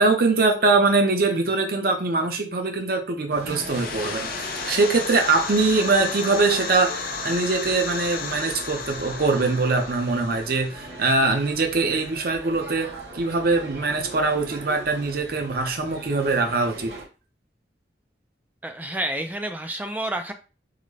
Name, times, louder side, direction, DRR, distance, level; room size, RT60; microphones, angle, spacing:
voice 1, 0.0-16.9, right 3 dB, 55° right, 3 dB, 0.7 m, -22 dB
sound 1, 3.3-17.0, right 2 dB, 70° right, 1.1 m, -40 dB
sound 2, 3.4-12.0, left 5 dB, 50° left, 0.5 m, -34 dB
voice 2, 18.6-20.3, right 1 dB, 10° right, 6 dB, 0.3 m, -29 dB
3.8 x 2.1 x 3.2 m, 0.33 s
head